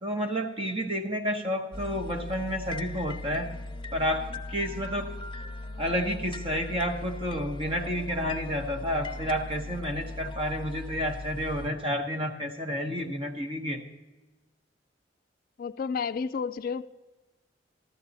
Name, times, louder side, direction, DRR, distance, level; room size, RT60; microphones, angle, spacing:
voice 1, 0.0-3.5 3.9-5.2 5.8-13.8, equal, 30° right, 1.1 m, -30 dB
sound 1, 1.7-11.7, left 2 dB, 25° left, 0.7 m, -39 dB
voice 2, 15.6-16.8, left 5 dB, 50° left, 0.3 m, -31 dB
14.0 x 13.5 x 4.0 m
head